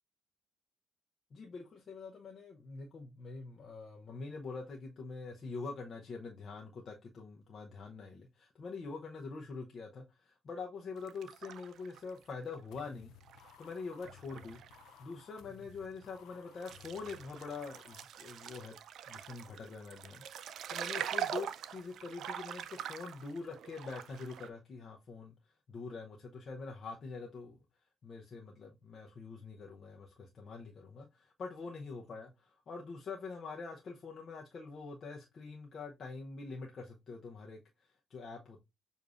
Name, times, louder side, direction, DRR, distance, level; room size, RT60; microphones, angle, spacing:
voice 1, 1.3-14.6 15.0-18.7 19.1-20.3 20.7-25.3 25.7-27.6 28.0-32.3 32.7-38.6, left 4 dB, 50° left, 0.7 m, -45 dB
sound 1, 11.0-12.8 13.2-14.9 15.2-15.3 16.0-16.1 16.5-24.5, right 9 dB, 75° right, 0.4 m, -43 dB
sound 2, 12.7-18.0, left 9 dB, 85° left, 0.3 m, -58 dB
6.6 x 2.6 x 2.4 m
cardioid pair, 90°, 0 cm